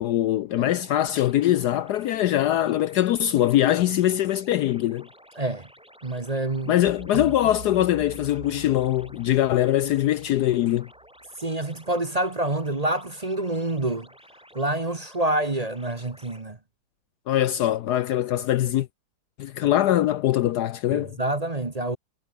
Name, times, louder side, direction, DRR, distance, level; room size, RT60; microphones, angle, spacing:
voice 1, 0.0-5.1 6.7-10.9 17.3-18.9 19.4-21.2, left 13 dB, 70° left, 1.0 m, -22 dB
sound 1, 0.7-16.4, equal, 5° right, 6.1 m, -53 dB
voice 2, 5.4-5.7 6.0-6.7 7.1-7.2 7.8-7.9 11.4-14.1 14.5-16.6 20.9-22.0, right 2 dB, 25° right, 1.3 m, -27 dB
sound 2, 6.8-11.7, right 4 dB, 40° right, 3.0 m, -44 dB
omnidirectional pair, 2.0 m